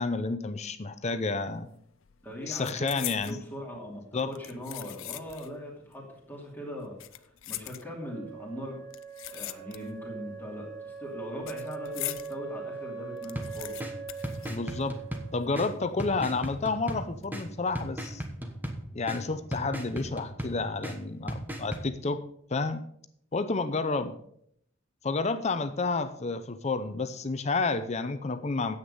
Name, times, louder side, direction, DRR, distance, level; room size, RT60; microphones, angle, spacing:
voice 1, 0.0-1.7 2.5-3.4 4.1-4.3 14.5-15.0 15.3-18.2 18.9-22.2 22.5-22.8 23.3-24.1 25.0-28.8, left 3 dB, 35° left, 10 dB, 0.6 m, -30 dB
sound 1, 1.4-1.7 2.0-3.4 4.2-5.6 5.9-6.0 6.8-8.2 8.9-10.1 10.4-12.3 12.7-12.8 13.0-15.1 15.4-15.5 16.2-16.6 17.0-17.3, left 15 dB, 85° left, 0.6 m, -41 dB
voice 2, 2.2-8.8 9.3-13.9, equal, 10° left, -2 dB, 2.6 m, -40 dB
Wind instrument woodwind instrument, 7.9-15.7, right 5 dB, 60° right, 5.2 m, -42 dB
sound 2, 13.3-21.9, equal, 10° right, 1.3 m, -38 dB
9.8 x 8.1 x 5.4 m, 0.67 s
head